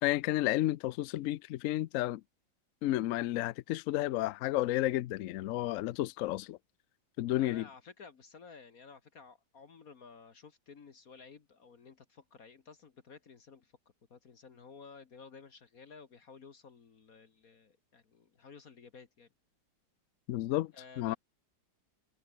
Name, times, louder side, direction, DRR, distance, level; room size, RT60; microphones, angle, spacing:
voice 1, 0.0-2.2 2.8-6.6 7.2-7.7 20.3-21.2, left 15 dB, 80° left, 0.7 m, -32 dB
voice 2, 7.4-13.7 14.1-19.3 20.7-21.2, left 5 dB, 50° left, 1.9 m, -54 dB
omnidirectional pair, 2.0 m